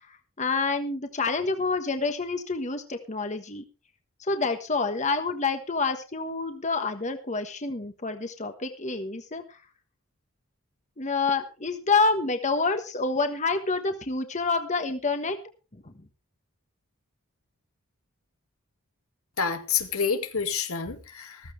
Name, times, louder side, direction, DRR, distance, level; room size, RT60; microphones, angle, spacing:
voice 1, 0.4-3.6 4.3-9.6 11.0-15.4 15.8-15.9, left 4 dB, 35° left, 1.3 m, -27 dB
voice 2, 19.4-21.4, left 6 dB, 85° left, 2.0 m, -28 dB
14.5 x 14.5 x 3.3 m
head